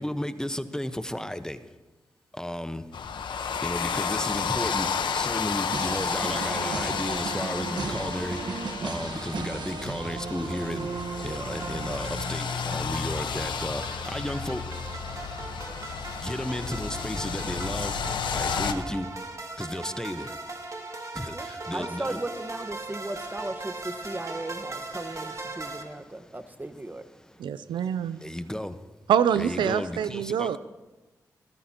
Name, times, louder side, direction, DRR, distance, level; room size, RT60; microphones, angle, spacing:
voice 1, 0.0-1.6 2.3-2.9 3.6-14.6 16.2-18.0 18.3-19.1 19.6-20.4 21.1-22.2 25.5-25.8 26.2-26.4 27.2-27.5 28.2-28.8 29.4-30.6, left 1 dB, 10° left, 10 dB, 1.0 m, -34 dB
sound 1, 2.9-18.7, left 6 dB, 80° left, 1.0 m, -32 dB
sound 2, 5.7-12.7, right 4 dB, 65° right, 1.3 m, -35 dB
sound 3, 11.6-25.8, right 2 dB, 40° right, 2.3 m, -39 dB
voice 2, 21.7-27.0, right 1 dB, 20° right, 9 dB, 1.3 m, -36 dB
voice 3, 27.4-28.2 29.1-30.6, right 9 dB, 85° right, 14 dB, 0.4 m, -25 dB
22.5 x 15.0 x 2.9 m, 1.1 s
supercardioid pair, 45°, 8 cm